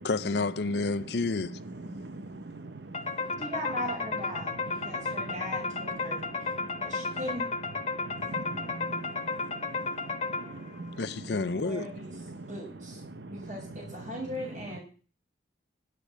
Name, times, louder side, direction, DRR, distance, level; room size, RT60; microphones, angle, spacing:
voice 1, 0.0-1.6 11.0-11.9, left 3 dB, 65° left, 0.6 m, -29 dB
voice 2, 1.9-3.4 4.5-7.2 7.8-11.0 12.3-12.5 13.0-13.5, right 2 dB, 65° right, 0.9 m, -43 dB
sound 1, 2.9-10.8, left 4 dB, 35° left, 1.6 m, -33 dB
voice 3, 3.4-6.5 6.8-7.5 11.6-13.0 13.3-14.8, equal, 45° right, 5.8 m, -39 dB
10.5 x 8.4 x 8.2 m
head